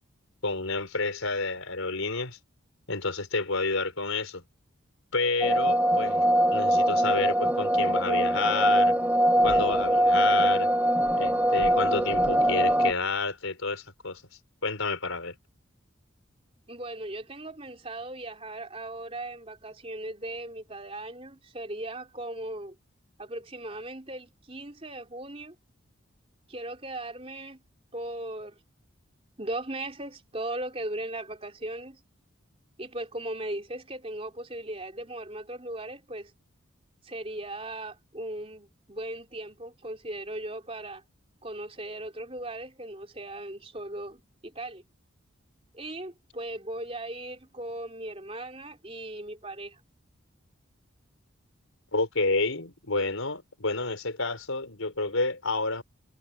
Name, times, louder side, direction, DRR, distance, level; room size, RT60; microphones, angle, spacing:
voice 1, 0.4-2.4 2.9-4.4 5.1-6.2 6.5-8.9 9.4-10.7 11.2-14.2 14.6-15.3 51.9-55.8, left 3 dB, 85° left, 4.6 m, -29 dB
sound 1, 5.4-12.9, right 1 dB, 10° right, 0.9 m, -23 dB
voice 2, 16.7-22.8 23.2-25.6 26.5-27.6 27.9-28.6 29.4-32.0 32.8-36.3 37.0-41.0 41.4-44.8 45.7-49.8, right 1 dB, 30° right, 3.7 m, -38 dB
head